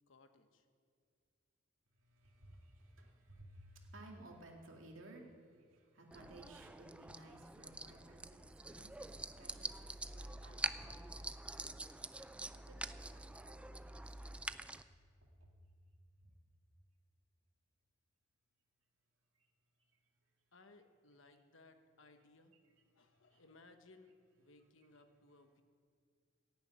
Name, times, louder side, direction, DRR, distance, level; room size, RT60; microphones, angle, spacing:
voice 1, 0.1-0.6 20.5-22.6 23.0-25.6, left 2 dB, 70° left, 7 dB, 1.1 m, -63 dB
voice 2, 2.0-12.0 12.3-14.4 15.2-15.6 16.2-16.3 23.0-23.4, right 1 dB, 85° right, 0 dB, 2.3 m, -59 dB
sound 1, 6.1-14.8, right 2 dB, 5° right, 0.3 m, -46 dB
16.0 x 7.0 x 9.3 m, 2.1 s
head